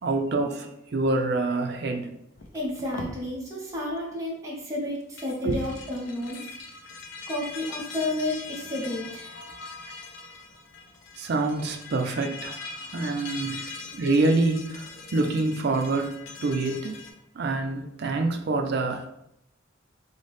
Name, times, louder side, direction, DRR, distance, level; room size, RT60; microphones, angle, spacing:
voice 1, 0.0-2.1 5.4-5.6 11.2-16.2 16.4-17.0 17.3-19.1, right 2 dB, 55° right, 4 dB, 0.4 m, -26 dB
sound 1, 2.4-3.2 5.0-17.1, left 4 dB, 70° left, 0.5 m, -41 dB
voice 2, 2.5-6.4 7.3-9.3, left 1 dB, 15° right, -4 dB, 0.7 m, -31 dB
3.9 x 2.0 x 3.3 m, 0.79 s
head